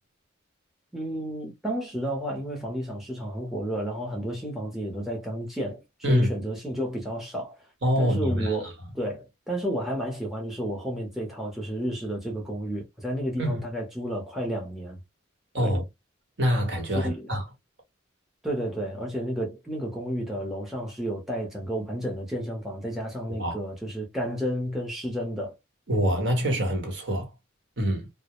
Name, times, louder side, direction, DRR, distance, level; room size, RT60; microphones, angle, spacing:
voice 1, 0.9-5.8 6.1-7.7 8.0-15.0 15.6-15.8 16.9-17.4 18.4-25.6, equal, ahead, 0.6 m, -31 dB
voice 2, 7.8-8.6 13.4-13.6 15.5-15.8 16.4-17.4 23.3-23.6 25.9-27.3 27.8-28.1, equal, 60° right, 1.0 m, -25 dB
2.3 x 2.0 x 2.8 m
head